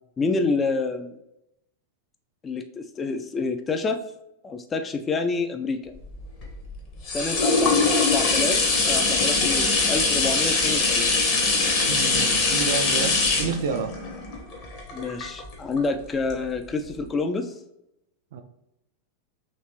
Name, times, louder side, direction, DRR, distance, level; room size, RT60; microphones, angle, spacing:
voice 1, 0.2-1.2 2.4-4.0 4.4-5.9 7.1-8.6 8.8-11.1 14.9-17.5, left 3 dB, 20° left, 7 dB, 0.3 m, -28 dB
sound 1, 6.0-15.8 16.3-16.4, left 3 dB, 40° left, 1.0 m, -22 dB
voice 2, 11.9-13.9 18.3-18.4, right 6 dB, 55° right, 7 dB, 0.3 m, -29 dB
3.2 x 3.0 x 2.9 m, 0.85 s
figure-of-eight pair, 90°, 0 cm